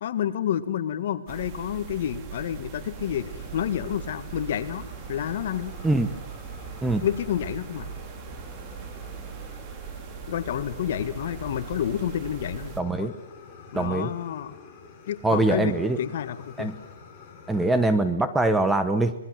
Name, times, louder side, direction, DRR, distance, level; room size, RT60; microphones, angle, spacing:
voice 1, 0.0-5.7 7.0-7.9 10.3-13.1 13.7-14.6 15.1-16.7, left 10 dB, 50° left, 10 dB, 1.9 m, -29 dB
sound 1, 1.3-12.8, right 7 dB, 25° right, 2.1 m, -40 dB
Fire, 2.9-18.0, left 5 dB, 15° left, 5.0 m, -48 dB
voice 2, 12.8-13.1 13.7-14.1 15.2-16.0 16.6-16.8 17.5-19.1, right 2 dB, 5° right, 10 dB, 1.0 m, -23 dB
26.5 x 21.0 x 7.8 m, 0.80 s
hypercardioid pair, 165°, 0 cm